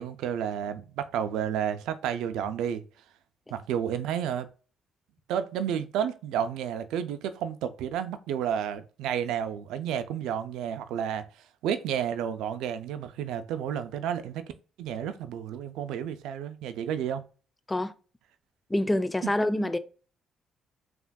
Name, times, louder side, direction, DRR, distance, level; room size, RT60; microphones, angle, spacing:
voice 1, 0.0-2.8 3.5-4.5 5.3-14.4 14.8-17.2 19.2-19.3, right 9 dB, 80° right, 0.3 m, -31 dB
voice 2, 18.7-19.8, left 1 dB, 15° left, 0.3 m, -26 dB
3.4 x 2.5 x 2.2 m
supercardioid pair, 60°, 0 cm